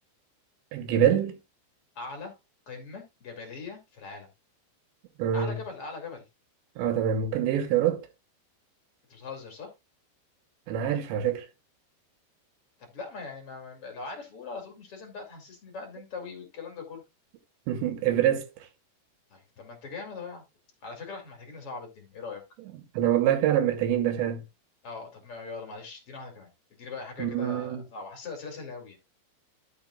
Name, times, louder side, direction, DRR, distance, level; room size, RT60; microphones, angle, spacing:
voice 1, 0.7-1.4 5.2-5.6 6.8-8.1 10.7-11.5 17.7-18.5 22.9-24.4 27.2-27.8, right 10 dB, 85° right, 3.4 m, -25 dB
voice 2, 1.9-2.4 2.7-4.3 5.3-6.2 9.1-9.7 12.8-17.0 19.3-20.4 20.8-22.4 24.8-29.0, left 4 dB, 40° left, 2.8 m, -41 dB
12.5 x 6.7 x 2.4 m
omnidirectional pair, 5.2 m